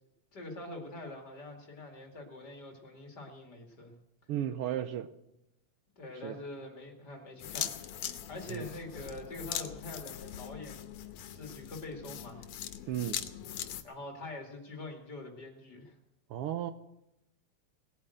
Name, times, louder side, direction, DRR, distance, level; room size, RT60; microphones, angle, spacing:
voice 1, 0.3-3.9 6.0-10.9 11.3-12.5 13.8-16.0, left 2 dB, 35° left, 2 dB, 2.7 m, -44 dB
voice 2, 4.3-5.1 6.2-6.4 8.5-8.7 12.9-13.2 16.3-16.7, right 11 dB, 80° right, 10 dB, 1.3 m, -34 dB
sound 1, 7.4-13.8, left 11 dB, 75° left, 2.2 m, -41 dB
19.0 x 9.0 x 7.9 m, 0.86 s
omnidirectional pair, 3.4 m